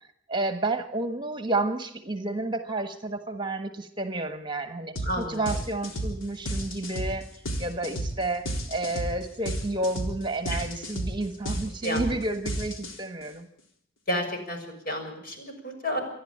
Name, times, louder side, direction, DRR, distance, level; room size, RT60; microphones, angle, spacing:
voice 1, 0.3-7.3 7.6-13.5, right 2 dB, 25° right, 9 dB, 1.4 m, -31 dB
sound 1, 4.9-5.1 5.4-13.2, right 1 dB, 80° left, 4.0 m, -32 dB
voice 2, 5.0-5.4 10.5-10.6 11.8-12.1 14.1-16.0, equal, 50° left, 4 dB, 6.7 m, -31 dB
28.0 x 11.5 x 8.7 m, 0.71 s
head